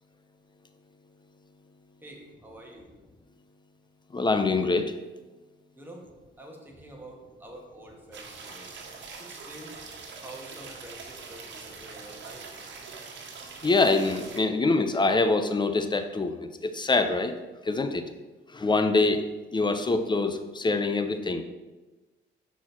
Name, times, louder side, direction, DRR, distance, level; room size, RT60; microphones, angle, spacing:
voice 1, 2.0-2.9 5.8-6.0 6.4-8.7 9.2-9.8 10.2-12.5, right 1 dB, 10° right, -1 dB, 1.9 m, -47 dB
voice 2, 4.1-5.0 13.6-17.4 17.6-18.0 18.5-19.3 19.5-21.4, left 3 dB, 25° left, 9 dB, 0.7 m, -25 dB
sound 1, 8.1-14.4, right 4 dB, 65° right, 1.4 m, -43 dB
6.2 x 4.7 x 5.8 m, 1.2 s
cardioid pair, 90°, 20 cm